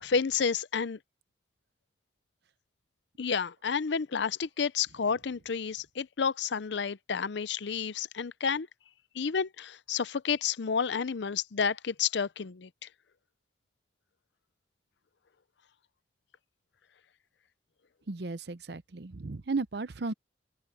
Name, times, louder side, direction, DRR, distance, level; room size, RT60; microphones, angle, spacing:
voice 1, 0.0-1.0 3.2-8.7 9.2-12.7, left 6 dB, 70° left, 0.6 m, -30 dB
voice 2, 18.1-20.1, right 3 dB, 60° right, 0.7 m, -34 dB
open air
head